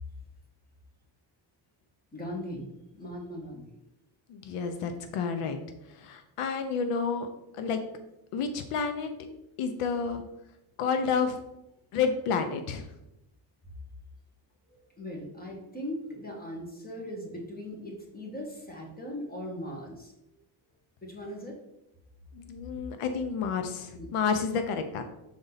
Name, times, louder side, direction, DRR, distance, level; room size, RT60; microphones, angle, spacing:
voice 1, 2.1-2.7 2.9-3.6 14.7-20.1 21.0-21.5 23.9-24.1, equal, 20° left, 0 dB, 1.7 m, -39 dB
voice 2, 4.3-5.6 6.0-7.3 7.5-7.8 8.3-9.1 9.6-10.2 10.8-11.4 11.9-12.9 22.3-25.0, left 5 dB, 90° left, 8 dB, 0.8 m, -30 dB
6.9 x 4.0 x 4.0 m, 0.88 s
cardioid pair, 115°, 50 cm